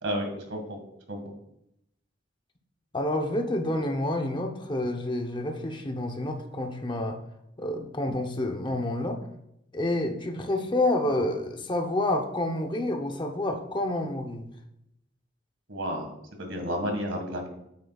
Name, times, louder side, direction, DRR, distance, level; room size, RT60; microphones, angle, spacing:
voice 1, 0.0-0.8 1.1-1.2 15.7-16.1 16.4-17.5, equal, 90° right, 4 dB, 1.8 m, -31 dB
voice 2, 2.9-7.2 7.6-9.2 9.7-14.5, left 1 dB, 25° left, 4 dB, 0.7 m, -28 dB
8.6 x 7.6 x 2.4 m, 0.80 s
head